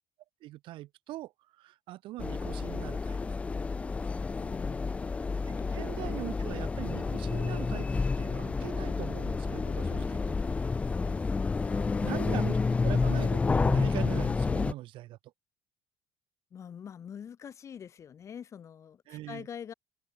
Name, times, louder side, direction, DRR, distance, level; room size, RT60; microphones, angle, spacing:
voice 1, 0.4-3.2 5.5-7.9 8.2-10.2 12.0-15.2 19.1-19.5, right 16 dB, 55° right, 6.9 m, -41 dB
sound 1, 2.2-14.7, left 4 dB, 10° left, 0.4 m, -30 dB
voice 2, 4.3-5.1 5.6-5.8 11.5-12.8 16.5-19.7, left 8 dB, 30° left, 7.9 m, -45 dB
cardioid pair, 175°, 10 cm